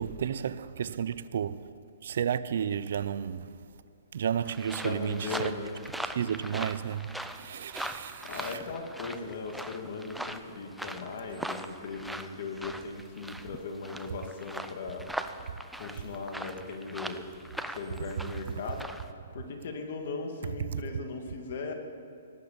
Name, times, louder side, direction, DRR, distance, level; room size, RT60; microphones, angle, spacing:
voice 1, 0.0-1.7 2.0-3.5 4.1-5.5 6.2-8.5 20.7-20.8, right 8 dB, 60° right, 0.5 m, -32 dB
sound 1, 4.5-19.1, right 1 dB, ahead, 0.4 m, -41 dB
voice 2, 4.8-5.8 8.2-15.1 15.8-17.3 17.7-21.7, left 4 dB, 50° left, 2.2 m, -38 dB
18.0 x 8.5 x 8.6 m
hypercardioid pair, 165°, 0 cm